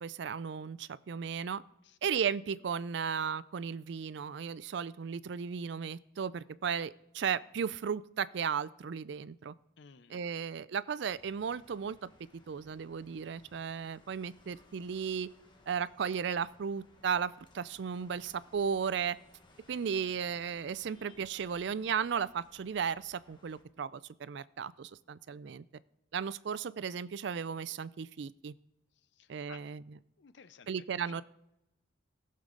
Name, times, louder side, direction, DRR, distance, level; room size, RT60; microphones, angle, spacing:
voice 1, 0.0-1.6 2.0-9.5 10.1-12.0 12.5-15.3 15.7-19.2 19.7-25.6 26.1-28.5 29.3-29.8 30.7-31.2, right 7 dB, 60° right, 0.4 m, -35 dB
voice 2, 9.8-10.2 29.0-29.7 30.2-31.2, left 6 dB, 60° left, 0.5 m, -56 dB
sound 1, 11.0-23.6, left 1 dB, 25° left, 1.2 m, -63 dB
18.5 x 6.6 x 3.8 m
head